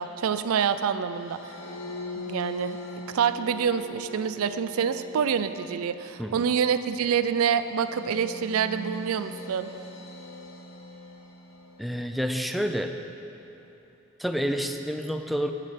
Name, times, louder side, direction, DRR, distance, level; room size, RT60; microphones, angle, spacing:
voice 1, 0.0-1.6 2.2-2.8 3.1-9.7, right 7 dB, 90° right, 12 dB, 0.4 m, -26 dB
sound 1, 1.1-12.4, left 2 dB, 80° left, 1.0 m, -42 dB
voice 2, 11.8-13.0 14.2-15.5, equal, ahead, 6 dB, 0.3 m, -29 dB
7.5 x 7.5 x 6.4 m, 2.9 s
head